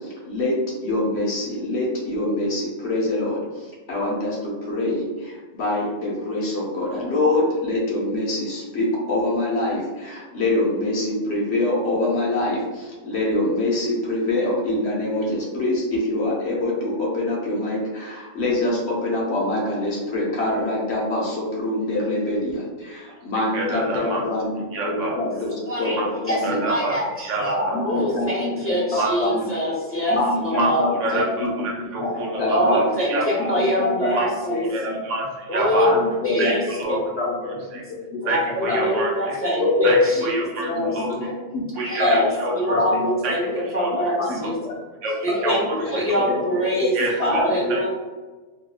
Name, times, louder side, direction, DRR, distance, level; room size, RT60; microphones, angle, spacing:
voice 1, 0.0-26.6 27.7-28.8 29.2-29.4 30.1-31.5 32.0-32.8 33.4-34.1 34.9-35.0 35.9-36.6 37.2-37.5 38.1-38.2 38.7-39.0 39.6-41.6 42.0-42.4 42.7-43.5 44.2-44.8 45.4-45.5 45.8-45.9 46.2-46.4 46.8-47.8, left 2 dB, 60° left, -5 dB, 1.0 m, -25 dB
voice 2, 23.5-24.2 24.7-25.2 25.8-26.1 26.4-27.8 29.0-29.1 30.5-30.7 31.0-32.8 33.1-33.5 34.2-34.3 34.6-36.0 36.4-37.0 37.7-37.8 38.3-39.4 39.8-41.1 41.8-42.8 43.2-43.3 43.7-43.9 44.4-44.5 45.0-46.2 46.9-47.4 47.7-47.8, right 2 dB, 75° right, -2 dB, 1.0 m, -27 dB
voice 3, 25.7-26.0 26.3-26.4 26.7-30.9 32.4-34.7 35.5-35.9 36.2-36.6 36.9-37.0 38.2-41.0 41.2-41.3 41.8-44.6 45.2-47.9, equal, 20° left, -7 dB, 0.4 m, -24 dB
3.4 x 2.3 x 2.3 m, 1.3 s
omnidirectional pair, 1.3 m